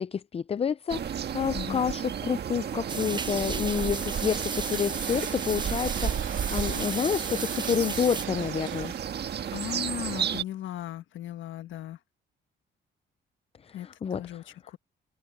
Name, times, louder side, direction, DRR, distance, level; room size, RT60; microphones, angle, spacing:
voice 1, 0.0-8.9 13.6-14.2, left 7 dB, 30° left, 0.4 m, -29 dB
sound 1, 0.9-10.4, right 8 dB, 55° right, 1.6 m, -32 dB
sound 2, 2.7-10.2, right 11 dB, 75° right, 2.9 m, -44 dB
sound 3, 2.9-8.3, right 4 dB, 20° right, 0.7 m, -36 dB
voice 2, 9.5-12.0 13.7-14.8, left 12 dB, 75° left, 1.5 m, -37 dB
cardioid pair, 90°, 20 cm